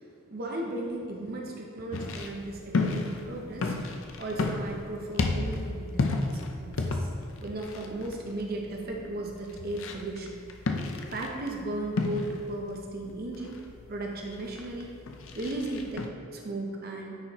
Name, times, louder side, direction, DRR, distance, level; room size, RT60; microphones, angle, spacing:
voice 1, 0.0-3.8 4.2-7.1 7.4-10.4 10.8-14.9 15.3-17.2, right 2 dB, 45° right, 0 dB, 0.7 m, -36 dB
sound 1, 1.9-16.1, left 3 dB, 65° left, 0.5 m, -33 dB
9.7 x 4.3 x 3.0 m, 2.6 s
head